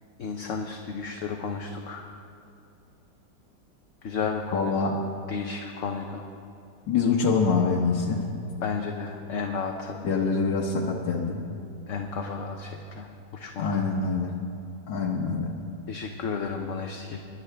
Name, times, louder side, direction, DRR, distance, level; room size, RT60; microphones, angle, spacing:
voice 1, 0.2-2.1 4.0-4.8 5.3-6.3 8.6-10.0 11.9-13.9 15.9-17.3, left 5 dB, 55° left, 3 dB, 1.0 m, -33 dB
voice 2, 4.5-5.0 6.9-8.3 10.0-11.4 13.6-14.3 14.9-15.6, left 4 dB, 80° left, -2 dB, 1.7 m, -25 dB
24.0 x 11.5 x 3.4 m, 2.7 s
omnidirectional pair, 1.9 m